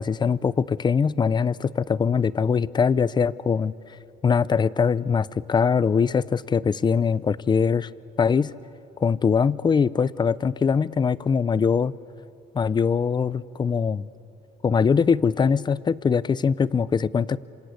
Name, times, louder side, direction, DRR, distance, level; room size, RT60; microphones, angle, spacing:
voice 1, 0.0-3.7 4.2-7.9 8.2-8.5 9.0-11.9 12.5-14.0 14.6-17.4, left 6 dB, 25° left, 19 dB, 0.6 m, -22 dB
26.5 x 26.0 x 8.4 m, 2.6 s
cardioid pair, 110°, 17 cm